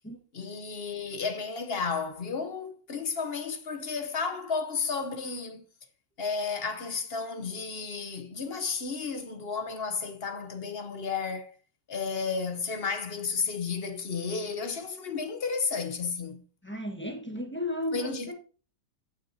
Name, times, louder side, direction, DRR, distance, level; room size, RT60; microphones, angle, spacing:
voice 1, 0.3-5.6 6.2-11.5 11.9-16.4 17.9-18.3, left 5 dB, 45° left, 0.9 m, -32 dB
voice 2, 16.6-18.3, left 1 dB, 5° left, 1.2 m, -34 dB
15.5 x 5.9 x 2.7 m
omnidirectional pair, 1.8 m